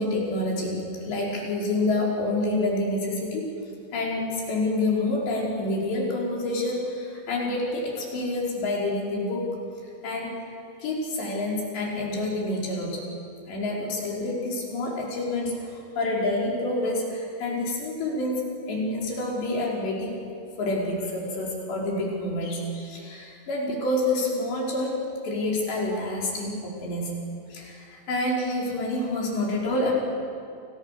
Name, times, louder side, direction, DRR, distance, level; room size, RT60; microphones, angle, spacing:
voice 1, 0.0-3.5 3.9-9.5 10.0-10.4 10.8-13.0 13.5-18.4 18.7-20.2 20.6-25.0 25.2-27.2 27.5-29.9, left 2 dB, 60° left, -3 dB, 7.0 m, -28 dB
29.0 x 26.0 x 6.8 m, 2.5 s
omnidirectional pair, 5.7 m